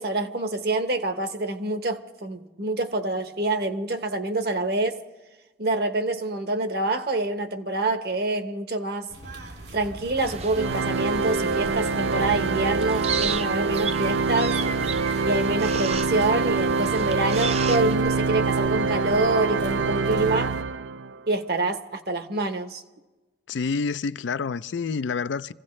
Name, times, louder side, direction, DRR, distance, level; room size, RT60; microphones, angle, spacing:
voice 1, 0.0-5.0 5.6-9.1 9.7-14.6 15.2-20.5 21.3-22.8, right 2 dB, 55° right, 1.1 m, -26 dB
sound 1, 9.1-20.6, right 1 dB, 70° right, 2.4 m, -41 dB
sound 2, 10.2-17.9, right 5 dB, 35° right, 0.5 m, -34 dB
Organ, 10.6-21.2, right 4 dB, 90° right, 0.5 m, -25 dB
voice 2, 23.5-25.5, left 5 dB, 75° left, 0.4 m, -28 dB
26.0 x 16.0 x 3.2 m
head